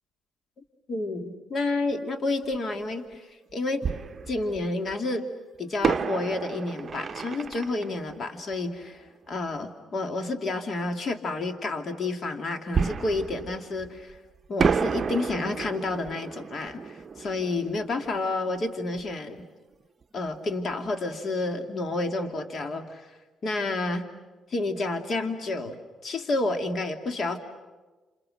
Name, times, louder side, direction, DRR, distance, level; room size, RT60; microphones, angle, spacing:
voice 1, 0.9-3.9 4.3-5.3 5.6-14.2 14.5-19.5 20.1-24.1 24.5-27.4, left 2 dB, 50° left, 6 dB, 2.6 m, -30 dB
Fireworks, 2.5-2.6 3.8-4.9 5.8-9.3 12.7-14.2 14.6-19.1 19.4-19.5 20.0-20.2, right 6 dB, 40° right, 0.8 m, -31 dB
29.5 x 28.5 x 6.5 m, 1.3 s
cardioid pair, 90°, 0 cm